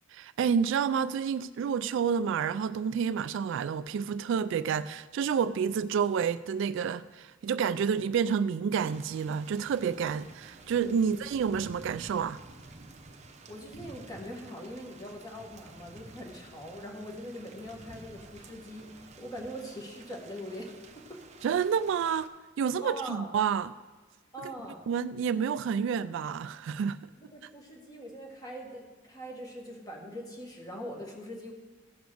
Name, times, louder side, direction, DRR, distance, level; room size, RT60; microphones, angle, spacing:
voice 1, 0.1-12.4 21.4-22.3 22.6-23.7 24.4-24.5 24.9-27.1, right 7 dB, 65° right, 0.3 m, -29 dB
Thunder / Rain, 8.8-22.3, right 3 dB, 35° right, 0.7 m, -51 dB
voice 2, 13.5-21.2 22.8-23.3 24.3-24.8 27.2-31.5, equal, 20° left, 1.7 m, -42 dB
15.0 x 5.2 x 6.3 m
head